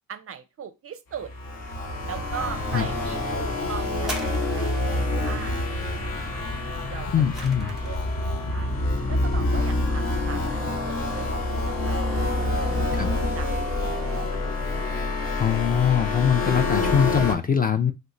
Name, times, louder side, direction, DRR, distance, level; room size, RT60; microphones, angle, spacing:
voice 1, 0.1-1.3 2.1-6.4 6.9-7.1 7.4-8.0 8.5-8.7 9.1-12.7 13.2-14.4, right 7 dB, 40° right, 10 dB, 0.5 m, -40 dB
sound 1, 1.1-17.3, left 2 dB, 60° left, 1.1 m, -27 dB
sound 2, 1.7-9.8, left 1 dB, 90° left, 1.2 m, -37 dB
sound 3, 4.0-5.0 6.7-8.1 8.9-9.0, equal, ahead, 0.9 m, -38 dB
voice 2, 7.1-7.7 12.9-13.1 15.4-17.9, left 8 dB, 25° left, 7 dB, 0.4 m, -22 dB
2.8 x 2.2 x 3.6 m, 0.25 s
supercardioid pair, 65°, 37 cm